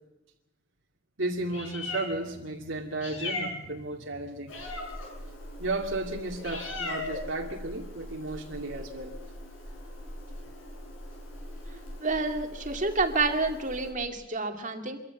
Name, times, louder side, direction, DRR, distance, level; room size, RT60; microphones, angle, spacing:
voice 1, 1.2-4.5 5.6-9.1, right 2 dB, 70° right, 0 dB, 2.4 m, -34 dB
Meow, 1.3-13.9, left 2 dB, 85° left, 7.6 m, -40 dB
voice 2, 12.0-15.0, right 3 dB, 40° right, 5 dB, 2.3 m, -29 dB
25.0 x 14.5 x 8.3 m, 0.92 s
head